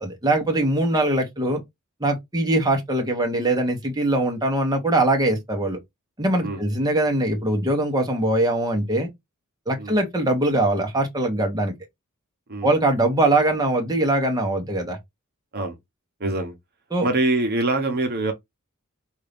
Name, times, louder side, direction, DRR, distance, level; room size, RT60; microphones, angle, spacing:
voice 1, 0.0-1.6 2.0-5.8 6.2-9.1 9.7-11.7 12.6-15.0 16.9-17.1, right 1 dB, 20° right, 1.2 m, -22 dB
voice 2, 16.2-16.5 17.0-18.3, right 2 dB, 50° right, 1.2 m, -24 dB
5.4 x 2.6 x 3.5 m
head